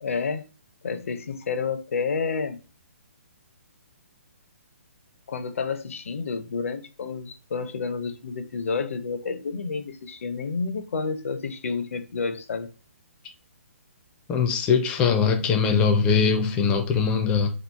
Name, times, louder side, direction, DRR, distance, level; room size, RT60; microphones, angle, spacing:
voice 1, 0.0-0.5 0.8-2.6 5.3-12.7, left 5 dB, 70° left, 0.5 m, -30 dB
voice 2, 14.3-17.5, left 6 dB, 15° left, 0.4 m, -21 dB
3.0 x 2.4 x 3.4 m
hypercardioid pair, 160°, 8 cm